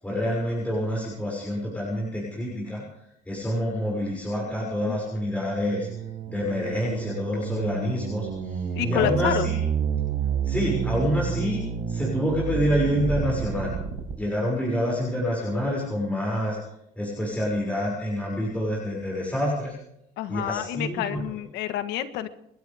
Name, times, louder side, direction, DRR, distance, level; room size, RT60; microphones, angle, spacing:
voice 1, 0.0-2.8 3.3-5.9 6.3-9.6 10.4-11.6 11.9-13.7 14.2-16.6 17.0-19.7 20.3-21.0, equal, 10° left, -4 dB, 6.3 m, -27 dB
sound 1, 5.4-14.1, right 7 dB, 85° right, 4.9 m, -30 dB
voice 2, 8.7-9.5 20.2-22.3, left 11 dB, 90° left, 10 dB, 1.5 m, -28 dB
29.0 x 12.5 x 3.6 m, 0.76 s
cardioid pair, 110°, 17 cm